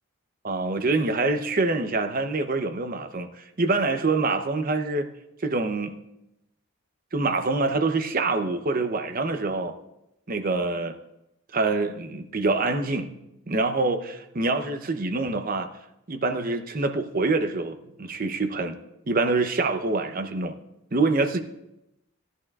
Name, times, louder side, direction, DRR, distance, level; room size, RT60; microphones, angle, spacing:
voice 1, 0.4-5.1 5.4-5.9 7.1-9.7 10.3-10.9 11.5-13.1 13.5-15.7 16.1-18.8 19.1-20.6 20.9-21.4, right 3 dB, 40° right, 7 dB, 0.7 m, -25 dB
15.5 x 11.0 x 2.4 m, 0.89 s
head